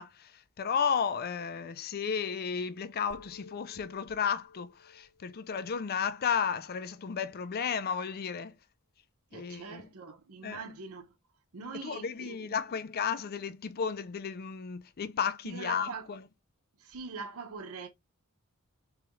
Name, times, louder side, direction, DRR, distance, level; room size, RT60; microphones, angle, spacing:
voice 1, 0.0-8.5 9.3-9.8 10.4-10.6 11.8-16.2, left 6 dB, 45° left, 0.4 m, -33 dB
sound 1, 3.1-7.2, left 3 dB, 75° left, 1.4 m, -57 dB
voice 2, 9.3-11.1 11.5-12.8 15.4-16.1 16.8-17.9, right 4 dB, 80° right, 0.8 m, -43 dB
3.5 x 3.2 x 3.1 m
head